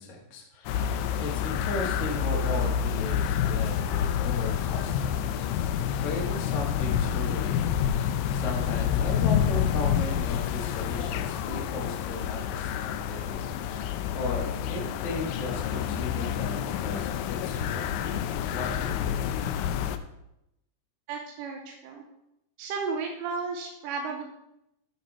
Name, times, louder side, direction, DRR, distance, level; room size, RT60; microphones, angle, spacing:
voice 1, 0.0-7.7 8.3-17.8 18.5-19.2, left 2 dB, 50° left, 0 dB, 0.8 m, -36 dB
sound 1, 0.7-20.0, left 9 dB, 85° left, 2.2 m, -28 dB
voice 2, 21.1-22.0 22.6-24.2, right 4 dB, 80° right, 2 dB, 2.3 m, -33 dB
12.0 x 4.1 x 4.5 m, 0.85 s
omnidirectional pair, 4.0 m